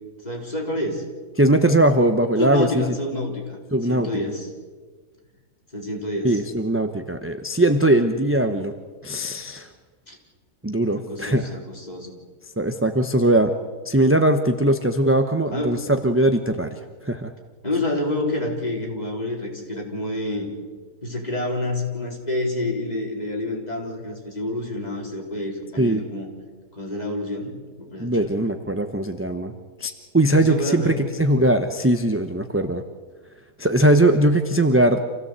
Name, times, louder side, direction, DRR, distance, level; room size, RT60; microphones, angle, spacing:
voice 1, 0.2-1.0 2.4-3.6 3.8-4.5 5.7-6.4 10.1-10.2 11.0-12.2 15.5-15.8 17.6-20.5 21.0-26.3 26.7-28.6 30.3-31.0, left 1 dB, 25° left, -1 dB, 4.3 m, -28 dB
voice 2, 1.4-2.9 3.7-4.3 6.2-8.7 9.0-9.7 10.6-11.5 12.6-13.5 13.8-17.3 25.8-26.0 28.0-29.5 29.8-32.8 33.6-35.0, right 1 dB, 10° right, 6 dB, 0.8 m, -20 dB
27.0 x 16.5 x 8.2 m, 1.5 s
omnidirectional pair, 1.6 m